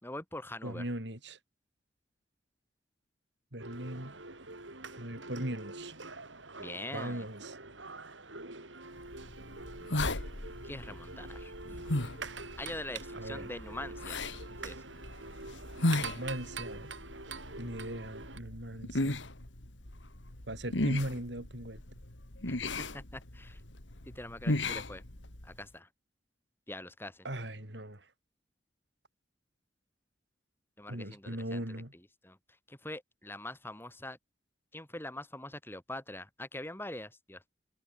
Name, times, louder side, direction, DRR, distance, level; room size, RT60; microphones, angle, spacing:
voice 1, 0.0-0.9 6.6-7.2 10.6-11.5 12.6-14.2 14.6-14.8 22.5-22.6 22.9-23.6 24.1-25.0 25.4-25.9 26.7-27.3 30.8-31.8 32.2-32.4 32.7-34.2 34.7-37.5, left 1 dB, 10° left, 6.1 m, -43 dB
voice 2, 0.6-1.4 3.5-4.1 5.0-5.9 6.9-7.6 13.1-13.5 16.0-16.9 17.6-19.2 20.5-21.8 27.2-28.0 30.9-31.9, right 1 dB, 65° right, 5.9 m, -39 dB
sound 1, 3.6-18.4, right 3 dB, 90° right, 7.6 m, -45 dB
sound 2, 9.0-25.6, left 2 dB, 80° left, 2.9 m, -37 dB
head